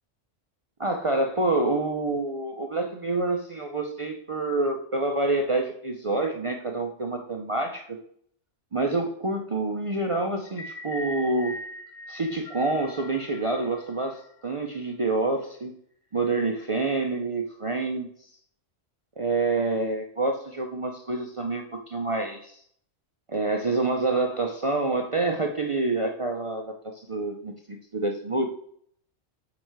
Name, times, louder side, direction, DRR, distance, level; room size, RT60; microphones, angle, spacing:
voice 1, 0.8-7.9 8.7-11.6 12.1-15.7 16.1-18.1 19.2-22.6 23.3-26.6 26.9-27.5 27.9-28.5, right 2 dB, 45° right, 3 dB, 0.4 m, -27 dB
sound 1, 10.5-14.8, left 1 dB, 65° left, 1.1 m, -41 dB
8.6 x 3.1 x 4.6 m, 0.64 s
omnidirectional pair, 1.3 m